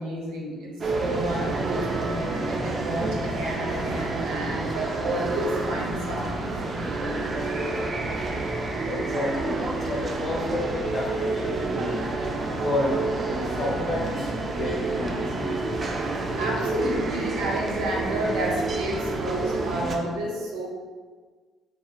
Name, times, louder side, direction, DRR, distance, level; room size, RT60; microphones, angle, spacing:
voice 1, 0.0-7.8 16.2-20.7, right 1 dB, 80° right, -3 dB, 0.6 m, -31 dB
sound 1, 0.8-20.0, right 3 dB, 40° right, 0.4 m, -29 dB
voice 2, 8.8-12.3 12.6-15.6, left 1 dB, 50° left, -2 dB, 0.7 m, -31 dB
3.0 x 2.0 x 2.5 m, 1.5 s
hypercardioid pair, 55°, 0 cm